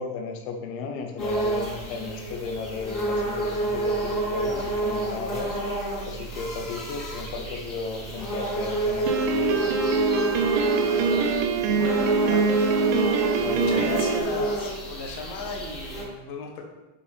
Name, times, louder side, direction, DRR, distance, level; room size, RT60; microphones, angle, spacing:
voice 1, 0.0-5.6 6.1-10.1 13.4-13.9, left 4 dB, 85° left, 4 dB, 3.2 m, -34 dB
sound 1, 1.2-16.0, right 2 dB, 30° left, 1.6 m, -28 dB
Piano, 9.1-14.2, right 5 dB, 80° right, 2.9 m, -24 dB
voice 2, 11.7-12.7 13.4-16.6, left 4 dB, 70° left, 1 dB, 2.3 m, -35 dB
8.3 x 5.5 x 4.1 m, 1.1 s
omnidirectional pair, 5.2 m